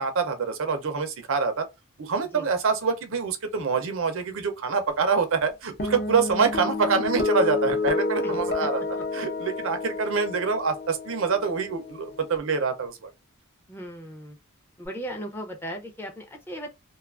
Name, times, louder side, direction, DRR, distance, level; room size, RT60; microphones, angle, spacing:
voice 1, 0.0-1.7 2.0-8.8 9.1-13.1, right 5 dB, 60° right, 0.5 m, -26 dB
sound 1, 5.8-12.4, left 3 dB, 45° left, 0.7 m, -30 dB
voice 2, 13.7-14.4 14.8-16.7, equal, 10° left, 0.5 m, -37 dB
2.6 x 2.3 x 2.4 m
head